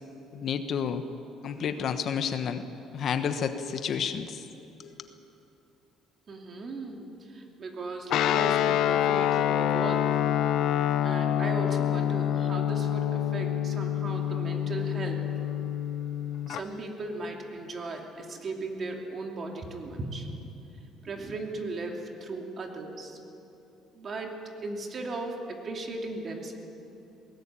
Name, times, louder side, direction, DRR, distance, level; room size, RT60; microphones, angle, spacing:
voice 1, 0.3-1.0 1.4-2.6 2.9-4.5 4.8-5.1, left 7 dB, 45° left, 9 dB, 1.1 m, -30 dB
voice 2, 6.3-10.2 11.0-15.3 16.5-20.3 21.0-23.2 23.9-26.6, right 3 dB, 35° right, 2 dB, 2.7 m, -37 dB
Guitar, 8.1-16.6, left 11 dB, 60° left, 0.6 m, -27 dB
21.5 x 18.5 x 8.9 m, 2.9 s
cardioid pair, 140°, 0 cm